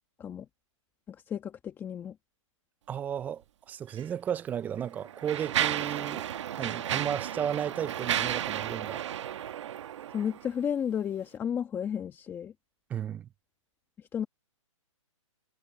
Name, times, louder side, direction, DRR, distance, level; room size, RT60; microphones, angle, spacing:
voice 1, 1.1-2.2 10.1-12.5 14.0-14.3, left 8 dB, 15° left, 1.6 m, -33 dB
voice 2, 2.9-6.3 6.6-9.0 12.9-13.3, right 9 dB, 10° right, 0.4 m, -34 dB
Mechanisms, 3.9-4.0 4.8-10.5, right 11 dB, 60° right, 1.4 m, -33 dB
hypercardioid pair, 150°, 17 cm